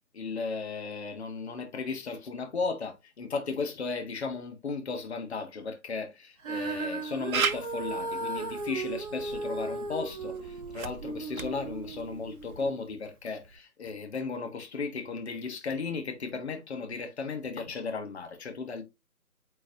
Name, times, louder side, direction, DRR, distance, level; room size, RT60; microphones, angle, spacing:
voice 1, 0.1-18.8, left 4 dB, 45° left, 1.4 m, -35 dB
Female singing, 6.4-12.7 13.4-13.5, right 3 dB, 25° right, 1.9 m, -36 dB
Camera, 7.3-12.7, right 5 dB, 65° right, 1.0 m, -37 dB
8.8 x 4.5 x 2.8 m
hypercardioid pair, 165°, 46 cm